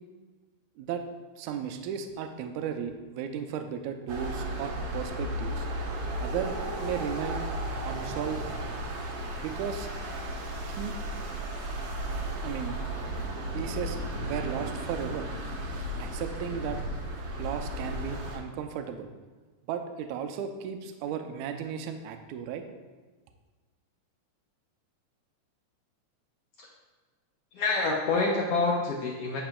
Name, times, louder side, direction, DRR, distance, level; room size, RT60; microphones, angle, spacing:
voice 1, 1.4-5.7 6.2-7.4 7.8-8.4 9.4-9.9 10.8-10.9 12.4-12.8 13.5-14.0 14.3-15.3 16.0-16.8 17.4-19.1 19.7-22.6, right 8 dB, 80° right, 7 dB, 1.8 m, -35 dB
sound 1, 4.1-18.4, right 1 dB, 65° right, 1.5 m, -34 dB
voice 2, 27.5-29.4, left 3 dB, 80° left, -2 dB, 1.4 m, -27 dB
10.0 x 5.9 x 2.2 m, 1.3 s
omnidirectional pair, 3.6 m